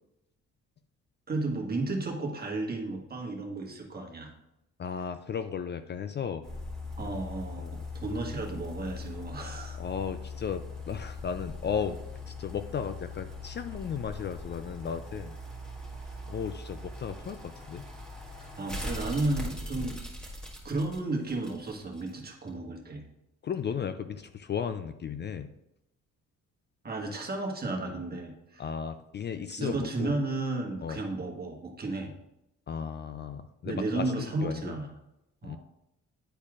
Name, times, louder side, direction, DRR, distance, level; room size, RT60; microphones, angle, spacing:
voice 1, 1.3-4.3 7.0-9.8 18.4-20.0 20.6-23.0 26.8-28.6 29.6-32.1 33.6-34.9 35.4-35.6, right 2 dB, 30° right, 0 dB, 1.5 m, -33 dB
voice 2, 4.8-6.5 7.6-7.8 9.8-12.0 12.3-15.4 16.3-17.8 19.8-19.9 23.4-25.5 28.6-30.1 30.8-31.0 32.7-34.7 35.4-35.6, left 7 dB, 35° left, 10 dB, 0.4 m, -35 dB
sound 1, 6.4-22.1 22.5-22.6, left 2 dB, ahead, 1.8 m, -41 dB
10.0 x 4.3 x 2.4 m, 0.86 s
cardioid pair, 90°, 30 cm